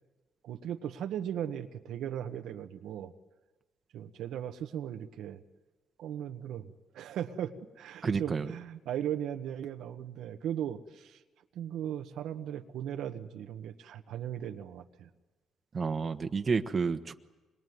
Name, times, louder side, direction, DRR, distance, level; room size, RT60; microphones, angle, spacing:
voice 1, 0.4-3.1 3.9-5.4 6.0-11.2 11.5-15.1, right 10 dB, 80° right, 6 dB, 1.4 m, -37 dB
voice 2, 8.0-8.5 15.7-17.1, right 5 dB, 40° right, 8 dB, 1.3 m, -30 dB
26.0 x 22.5 x 9.5 m, 1.2 s
cardioid pair, 90°, 0 cm